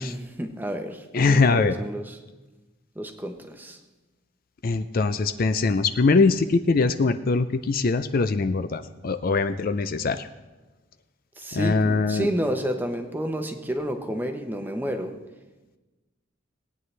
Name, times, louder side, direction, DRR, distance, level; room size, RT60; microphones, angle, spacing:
voice 1, 0.0-2.2 3.0-3.8 11.4-15.1, equal, 10° right, 5 dB, 0.9 m, -30 dB
voice 2, 1.1-1.8 4.6-10.3 11.5-12.3, left 4 dB, 45° left, 10 dB, 0.4 m, -22 dB
18.5 x 9.2 x 3.3 m, 1.2 s
head